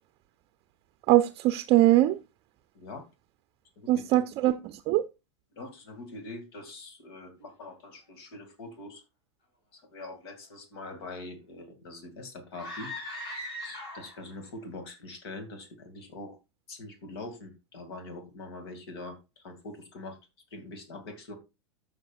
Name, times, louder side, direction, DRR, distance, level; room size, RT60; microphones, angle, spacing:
voice 1, 1.1-2.2 3.9-5.0, right 15 dB, 40° right, 0.6 m, -22 dB
voice 2, 3.8-4.2 5.5-9.0 9.7-12.9 13.5-16.4 16.7-20.2 20.5-21.4, left 2 dB, 60° left, 2.4 m, -43 dB
sound 1, 12.5-14.3, left 1 dB, 35° left, 5.7 m, -39 dB
13.5 x 6.1 x 2.4 m
figure-of-eight pair, 90°, 15 cm